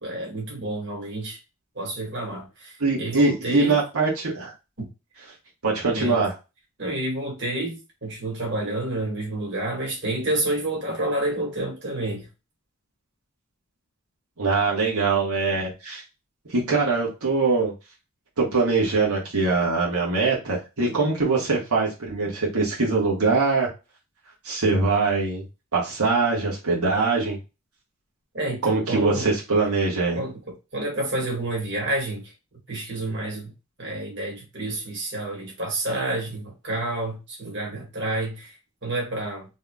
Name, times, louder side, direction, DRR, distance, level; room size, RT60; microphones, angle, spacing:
voice 1, 0.0-1.4 1.8-3.8 4.8-4.9 5.9-6.2 6.8-12.3 28.3-29.3 30.1-30.4 30.7-32.3 32.7-33.5 33.8-39.6, right 1 dB, 50° right, 1.7 m, -29 dB
voice 2, 2.8-4.5 5.6-6.3 14.4-16.0 16.5-17.7 18.4-23.7 24.4-25.4 25.7-27.4 28.6-30.2, right 3 dB, 90° right, 1.6 m, -22 dB
3.9 x 3.5 x 2.3 m
head